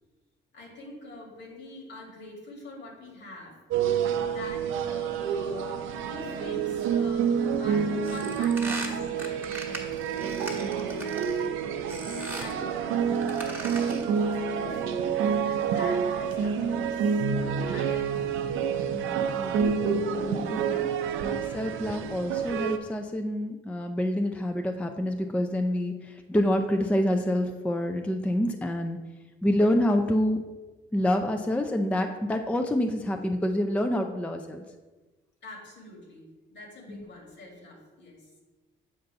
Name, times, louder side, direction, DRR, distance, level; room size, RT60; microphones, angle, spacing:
voice 1, 0.5-3.6 4.3-9.9 10.7-11.2 12.3-14.8 15.4-18.4 35.4-38.3, left 2 dB, 65° left, 0 dB, 1.8 m, -45 dB
sound 1, 3.7-22.8, right 7 dB, 85° right, 0.5 m, -28 dB
sound 2, 8.0-11.5 11.9-12.6 13.1-14.1, right 2 dB, 10° right, 1.3 m, -39 dB
voice 2, 18.9-20.9 21.2-29.0 29.4-30.4 30.9-34.6 36.9-37.0, left 1 dB, 5° left, 5 dB, 0.4 m, -27 dB
7.9 x 2.6 x 5.5 m, 1.2 s
cardioid pair, 90°, 20 cm